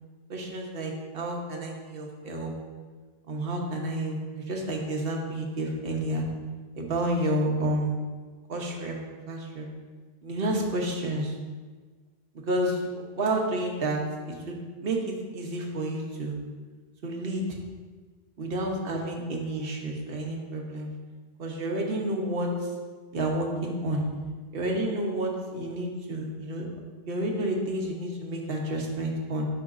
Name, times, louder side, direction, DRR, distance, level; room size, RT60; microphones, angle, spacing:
voice 1, 0.3-2.5 3.3-6.2 6.8-8.0 8.5-9.0 9.3-9.7 10.2-11.3 12.5-14.0 14.3-16.4 17.0-17.4 18.4-20.9 21.4-22.5 23.1-24.1 24.5-26.7 27.1-29.4, right 1 dB, 65° right, 0 dB, 1.2 m, -30 dB
8.7 x 5.7 x 2.6 m, 1.4 s
omnidirectional pair, 1.1 m